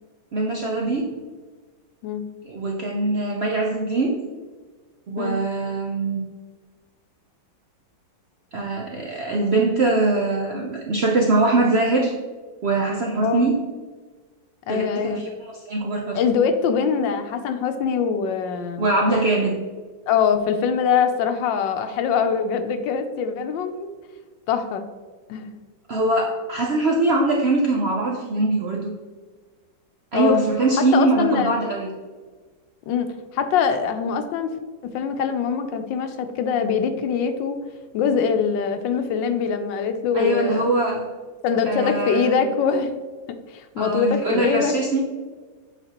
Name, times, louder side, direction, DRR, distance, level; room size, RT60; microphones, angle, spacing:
voice 1, 0.3-1.1 2.4-4.2 5.1-6.2 8.5-12.1 12.6-13.5 14.7-16.2 18.8-19.6 25.9-28.9 30.1-31.9 40.1-41.1 41.7-42.4 43.8-45.0, right 2 dB, 85° right, -1 dB, 0.5 m, -22 dB
voice 2, 13.1-13.5 14.7-15.2 16.1-18.9 20.1-23.9 24.5-24.9 25.3-25.5 30.1-30.4 30.9-31.5 32.9-33.1 33.3-34.5 34.8-37.6 37.9-40.7 41.4-42.9 43.3-44.7, left 6 dB, 85° left, 8 dB, 1.3 m, -23 dB
7.9 x 4.4 x 2.9 m, 1.4 s
omnidirectional pair, 2.0 m